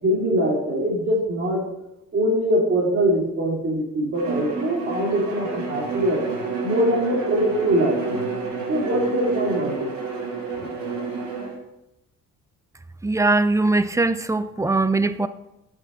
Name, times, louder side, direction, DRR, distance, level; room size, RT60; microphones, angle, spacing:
voice 1, 0.0-1.6 2.1-6.2 6.6-8.0 8.7-9.9 10.5-10.6, right 1 dB, 40° right, -2 dB, 3.5 m, -22 dB
Bowed string instrument, 4.2-11.6, right 4 dB, 80° right, 2.8 m, -30 dB
voice 2, 13.0-15.3, right 2 dB, 10° right, 13 dB, 0.5 m, -21 dB
8.2 x 5.8 x 5.6 m, 0.89 s
cardioid pair, 90°, 30 cm